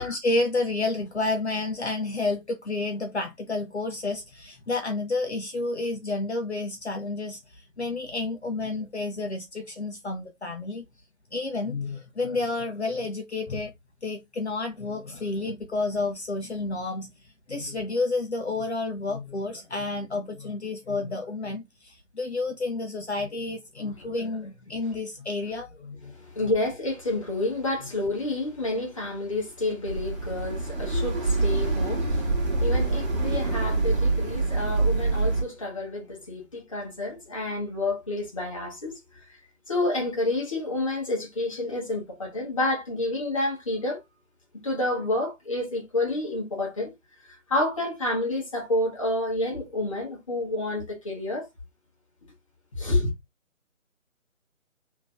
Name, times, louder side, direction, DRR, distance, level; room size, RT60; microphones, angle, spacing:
voice 1, 0.0-10.8 11.3-13.7 14.0-17.1 17.5-26.1 26.4-26.5, left 3 dB, 55° left, 0.7 m, -30 dB
voice 2, 26.0-39.4 39.7-44.0 44.6-46.9 47.3-51.5 52.7-53.1, left 2 dB, 25° left, 1.0 m, -29 dB
sound 1, 29.9-35.4, right 3 dB, 40° right, 1.5 m, -25 dB
3.3 x 2.9 x 2.4 m
figure-of-eight pair, 155°, 41 cm